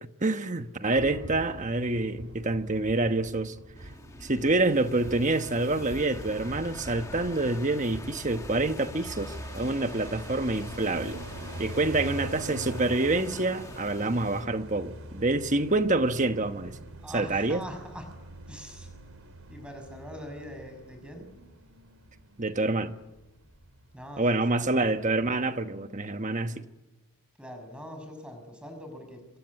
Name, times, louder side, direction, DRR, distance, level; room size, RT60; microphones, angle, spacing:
voice 1, 0.0-3.5 4.2-11.2 11.6-16.8 17.1-17.6 22.4-23.0 24.2-26.7, right 2 dB, 35° right, 1.2 m, -27 dB
sound 1, 1.0-12.0, right 1 dB, 55° right, 1.9 m, -45 dB
sound 2, 3.8-14.5, left 2 dB, 15° left, 1.7 m, -46 dB
sound 3, 9.1-24.2 24.5-24.6 24.8-25.4, right 1 dB, 75° right, 3.3 m, -43 dB
voice 2, 17.0-18.1 18.5-18.9 19.5-21.3 23.9-24.8 27.4-29.3, equal, 5° right, 6.0 m, -43 dB
26.0 x 23.5 x 9.7 m
head